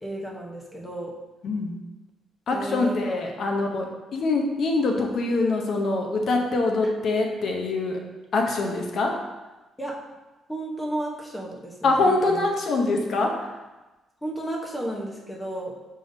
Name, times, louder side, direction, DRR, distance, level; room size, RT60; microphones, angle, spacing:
voice 1, 0.0-1.1 2.5-3.0 6.8-6.9 9.8-10.0 10.5-12.5 14.2-15.7, right 1 dB, 15° left, -2 dB, 0.9 m, -33 dB
voice 2, 2.5-3.9 4.1-8.0 8.3-9.2 11.8-13.3, left 3 dB, 60° left, 2 dB, 0.7 m, -24 dB
5.5 x 3.5 x 2.7 m, 1.1 s
cardioid pair, 90°, 0 cm